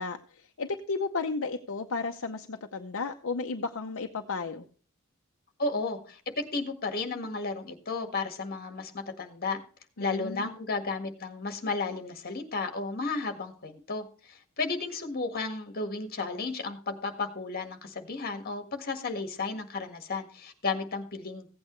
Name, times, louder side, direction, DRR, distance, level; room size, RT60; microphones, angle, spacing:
voice 1, 0.0-4.7 10.0-10.5, left 4 dB, 65° left, 4 dB, 0.7 m, -33 dB
voice 2, 5.6-9.6 10.0-21.5, left 3 dB, 45° left, 6 dB, 1.7 m, -33 dB
16.0 x 8.6 x 3.1 m, 0.41 s
head